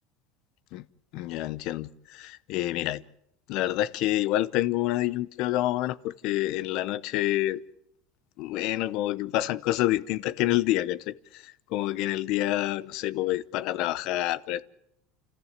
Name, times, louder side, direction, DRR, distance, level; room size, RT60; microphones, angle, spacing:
voice 1, 1.1-3.0 3.5-7.6 8.4-14.6, left 15 dB, 45° left, 0.8 m, -28 dB
29.5 x 14.5 x 7.4 m
cardioid pair, 175°, 0 cm